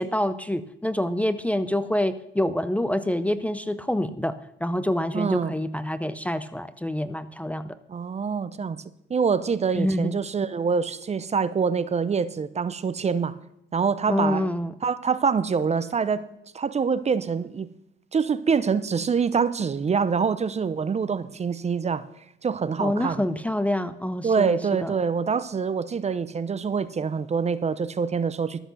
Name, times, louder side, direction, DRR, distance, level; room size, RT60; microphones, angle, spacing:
voice 1, 0.0-4.3 4.6-7.8 9.7-10.2 14.1-14.7 22.8-24.9, left 1 dB, 5° left, 12 dB, 0.5 m, -26 dB
voice 2, 5.1-5.5 7.9-8.8 9.1-13.3 13.7-14.5 14.8-16.2 16.5-17.7 18.1-22.1 22.4-23.2 24.2-28.6, right 6 dB, 35° right, 16 dB, 0.6 m, -25 dB
12.5 x 8.1 x 6.1 m, 0.75 s
cardioid pair, 90°, 20 cm